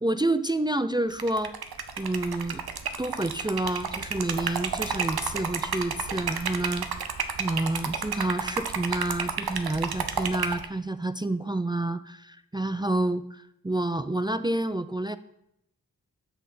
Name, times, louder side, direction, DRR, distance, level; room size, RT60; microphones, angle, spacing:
voice 1, 0.0-1.5 2.0-2.6 3.0-15.2, right 2 dB, 15° right, 13 dB, 0.3 m, -29 dB
Liquid, 1.1-10.7, right 6 dB, 80° right, 0.8 m, -31 dB
8.1 x 6.4 x 4.2 m, 0.79 s
cardioid pair, 45°, 37 cm